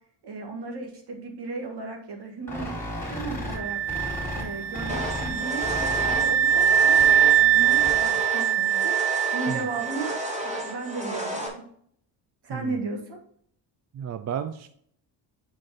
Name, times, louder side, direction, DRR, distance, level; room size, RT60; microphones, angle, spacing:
voice 1, 0.2-2.7 3.0-3.8 4.3-10.2 10.4-11.6 12.4-13.2, right 3 dB, 65° right, 1 dB, 2.1 m, -35 dB
sound 1, 2.5-8.2, left 1 dB, 5° left, 3.6 m, -35 dB
sound 2, 3.6-10.4, right 9 dB, 85° right, 0.6 m, -23 dB
sound 3, 4.9-11.5, equal, 15° right, 2.3 m, -33 dB
voice 2, 13.9-14.7, right 8 dB, 40° right, 10 dB, 0.5 m, -33 dB
8.7 x 5.1 x 4.0 m, 0.63 s
cardioid pair, 110°, 43 cm